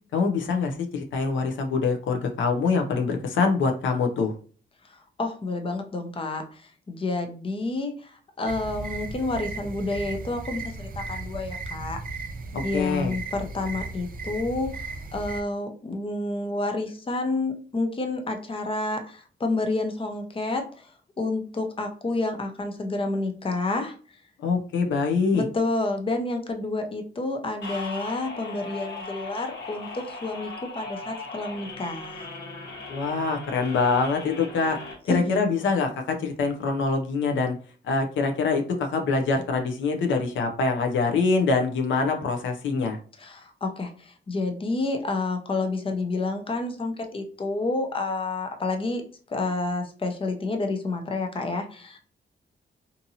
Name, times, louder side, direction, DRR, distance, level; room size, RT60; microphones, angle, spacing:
voice 1, 0.1-4.3 12.5-13.1 24.4-25.4 32.9-34.8 35.1-37.5 37.8-43.0, left 4 dB, 90° left, 4 dB, 0.5 m, -24 dB
voice 2, 4.8-12.0 12.6-20.9 21.2-24.0 25.3-32.4 35.1-35.5 43.2-49.0 49.3-52.0, left 2 dB, 30° left, 5 dB, 0.6 m, -29 dB
sound 1, 8.5-15.4, right 3 dB, 50° right, 0.5 m, -36 dB
sound 2, 27.6-34.9, left 3 dB, 70° left, 1.2 m, -38 dB
2.7 x 2.6 x 2.6 m, 0.40 s
cardioid pair, 80°, 19 cm